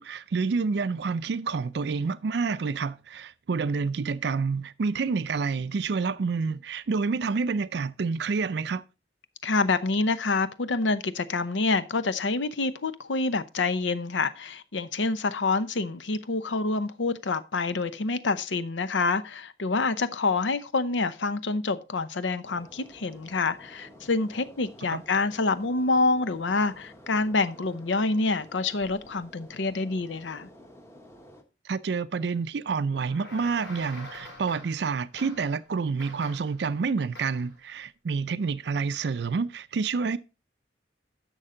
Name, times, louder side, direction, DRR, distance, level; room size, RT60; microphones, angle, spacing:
voice 1, 0.0-8.8 24.9-25.0 31.6-40.2, right 4 dB, 65° right, 0.4 m, -28 dB
voice 2, 9.4-30.5, left 3 dB, 85° left, 0.7 m, -27 dB
sound 1, 22.4-31.4, equal, 15° left, 1.1 m, -51 dB
sound 2, 32.9-34.9 35.2-35.6 36.0-36.6 37.2-37.5, left 2 dB, 65° left, 5.1 m, -45 dB
11.0 x 6.5 x 3.8 m
head